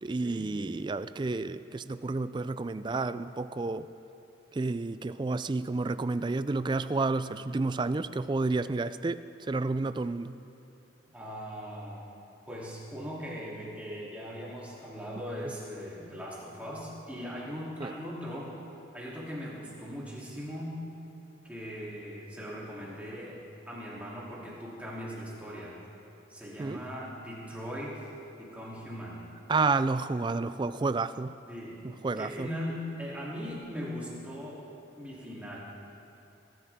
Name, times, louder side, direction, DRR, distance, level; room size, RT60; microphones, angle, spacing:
voice 1, 0.0-3.9 4.5-10.3 17.8-17.9 26.6-26.8 29.5-31.4 31.8-32.5, right 3 dB, 25° right, 13 dB, 0.3 m, -30 dB
voice 2, 11.1-12.1 12.5-18.5 18.9-20.8 21.4-23.4 23.7-25.8 26.3-28.1 28.4-29.3 31.5-31.8 32.2-34.7 35.0-35.6, equal, 5° right, -7 dB, 3.1 m, -39 dB
22.0 x 14.0 x 3.6 m, 2.8 s
head